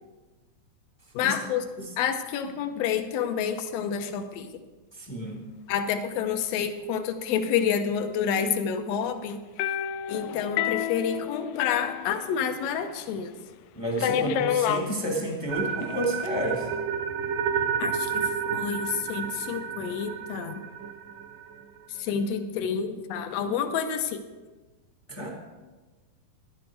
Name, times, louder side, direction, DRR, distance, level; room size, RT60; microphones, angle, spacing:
voice 1, 1.1-1.7 2.0-4.5 5.7-9.4 10.1-13.3 14.2-14.3 17.8-20.6 21.9-24.2, left 7 dB, 70° left, 7 dB, 1.7 m, -29 dB
voice 2, 4.9-5.4 13.7-16.7 25.1-25.3, right 1 dB, 15° left, 0 dB, 0.9 m, -30 dB
sound 1, 9.6-12.8 13.1-13.2 14.0-14.9 15.8-16.3, left 10 dB, 90° left, 2.3 m, -29 dB
sound 2, 15.5-21.6, right 7 dB, 75° right, 2.5 m, -31 dB
15.0 x 11.5 x 4.6 m, 1.2 s
omnidirectional pair, 3.9 m